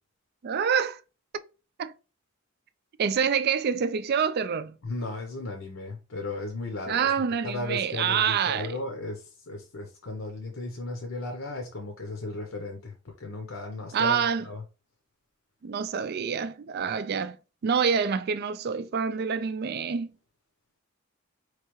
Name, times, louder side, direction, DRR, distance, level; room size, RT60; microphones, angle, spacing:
voice 1, 0.4-1.0 1.8-1.9 3.0-4.7 6.9-8.7 13.9-14.4 15.6-17.4 17.6-20.1, right 6 dB, 50° right, 0.3 m, -26 dB
voice 2, 4.8-7.1 7.4-14.6, left 2 dB, 70° left, 0.8 m, -35 dB
4.5 x 3.3 x 3.1 m
head